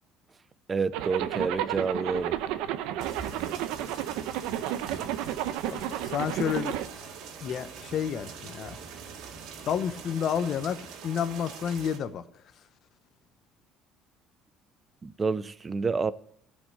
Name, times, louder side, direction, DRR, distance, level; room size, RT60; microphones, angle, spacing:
voice 1, 0.7-2.4 15.0-16.1, right 4 dB, 20° right, 0.5 m, -29 dB
Zipper (clothing), 0.9-6.9, right 12 dB, 90° right, 0.8 m, -32 dB
sound 1, 3.0-12.0, right 6 dB, 70° right, 2.1 m, -43 dB
voice 2, 5.6-6.8 7.4-8.8 9.6-10.8 11.0-12.2, left 8 dB, 45° left, 0.9 m, -30 dB
16.0 x 5.4 x 8.6 m
cardioid pair, 145°, 0 cm